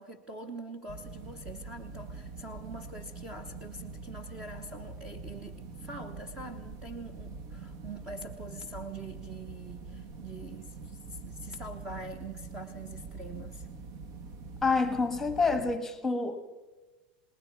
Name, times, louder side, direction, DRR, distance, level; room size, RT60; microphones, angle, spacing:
voice 1, 0.0-13.7, right 2 dB, 15° right, 1.2 m, -44 dB
sound 1, 0.9-15.8, right 4 dB, 50° right, 1.6 m, -44 dB
voice 2, 14.6-16.4, left 4 dB, 5° left, 1.5 m, -28 dB
28.5 x 20.0 x 4.8 m
supercardioid pair, 170°, 5 cm